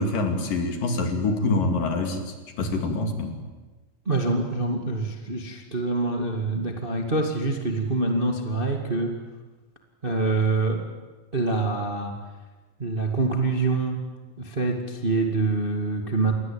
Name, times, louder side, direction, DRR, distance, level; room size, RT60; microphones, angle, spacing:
voice 1, 0.0-3.4, left 2 dB, 65° left, 5 dB, 4.3 m, -26 dB
voice 2, 4.1-9.1 10.0-10.8 11.3-12.1 12.8-14.0 14.4-16.3, right 3 dB, 20° right, 3 dB, 1.7 m, -25 dB
28.0 x 21.5 x 8.9 m, 1.2 s
omnidirectional pair, 4.3 m